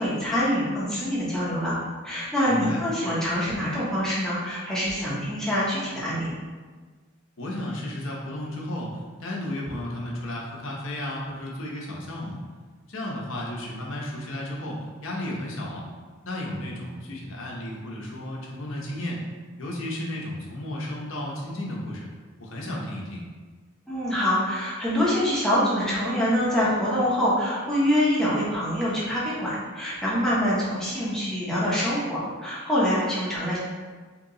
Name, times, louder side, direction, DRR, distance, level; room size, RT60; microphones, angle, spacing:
voice 1, 0.0-1.7 2.0-6.3 23.9-33.6, equal, ahead, -9 dB, 0.8 m, -25 dB
voice 2, 2.5-2.8 7.4-12.4 12.9-15.8 16.2-19.2 19.6-22.1 22.4-23.2, left 1 dB, 60° left, -2 dB, 0.8 m, -33 dB
3.0 x 2.9 x 3.8 m, 1.4 s
head